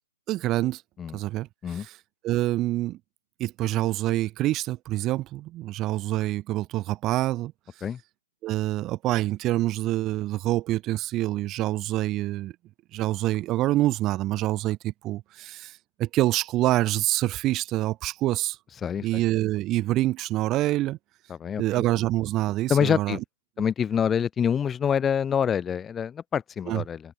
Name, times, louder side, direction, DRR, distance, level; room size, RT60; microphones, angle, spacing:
voice 1, 0.3-0.8 1.1-2.0 2.2-3.0 3.4-7.5 8.4-12.5 12.9-18.6 19.0-21.0 21.6-23.2 26.7-26.8, right 16 dB, 20° right, 2.4 m, -26 dB
voice 2, 21.4-21.8 22.7-23.2 23.6-27.0, left 8 dB, 10° left, 1.7 m, -26 dB
figure-of-eight pair, 145°, 0 cm